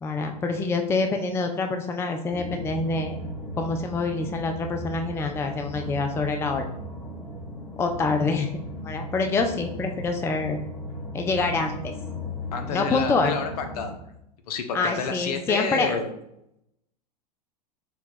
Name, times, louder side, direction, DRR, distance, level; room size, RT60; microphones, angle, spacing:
voice 1, 0.0-3.1 3.6-6.7 7.8-8.5 8.8-10.6 11.1-11.9 12.7-13.4 14.7-16.0, left 3 dB, 10° left, 5 dB, 0.4 m, -26 dB
sound 1, 2.3-13.9, equal, 35° left, 1.3 m, -36 dB
voice 2, 12.5-14.0 14.5-16.1, left 5 dB, 65° left, 6 dB, 0.8 m, -30 dB
4.5 x 2.3 x 4.0 m, 0.79 s
hypercardioid pair, 100°, 21 cm